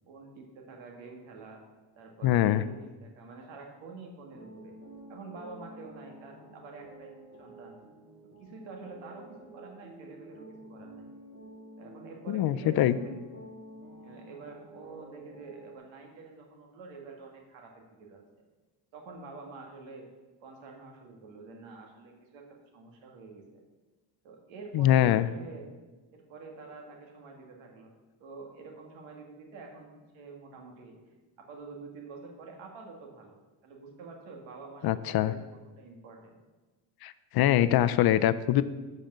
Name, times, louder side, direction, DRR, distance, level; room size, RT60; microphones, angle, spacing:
voice 1, 0.1-1.6 2.0-4.8 5.1-7.8 8.4-11.1 11.8-13.2 14.0-18.4 18.9-20.1 20.4-23.6 24.2-25.7 26.1-27.9 28.2-31.0 31.4-35.5 35.8-36.4, right 3 dB, 80° right, 1 dB, 2.0 m, -47 dB
voice 2, 2.2-2.6 12.3-13.0 24.7-25.3 34.8-35.3 37.0-38.6, left 12 dB, 55° left, 13 dB, 0.5 m, -23 dB
sound 1, 4.3-15.8, right 1 dB, 30° right, 3.0 m, -50 dB
7.7 x 5.2 x 7.3 m, 1.2 s
cardioid pair, 120°, 46 cm